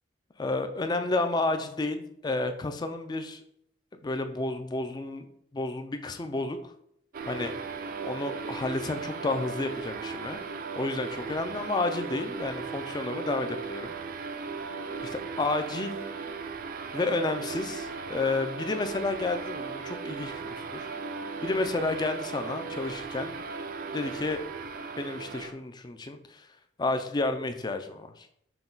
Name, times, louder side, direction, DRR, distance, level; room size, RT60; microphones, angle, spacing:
voice 1, 0.4-3.4 3.9-5.2 5.5-6.7 7.3-7.5 8.0-10.4 10.8-13.9 15.0-16.1 16.9-20.4 20.7-20.9 21.4-23.3 23.9-24.4 25.0-26.5 26.8-28.3, left 2 dB, 25° left, 7 dB, 0.4 m, -31 dB
sound 1, 7.1-25.5, right 4 dB, 50° right, 0.4 m, -37 dB
5.9 x 2.2 x 3.8 m, 0.72 s
head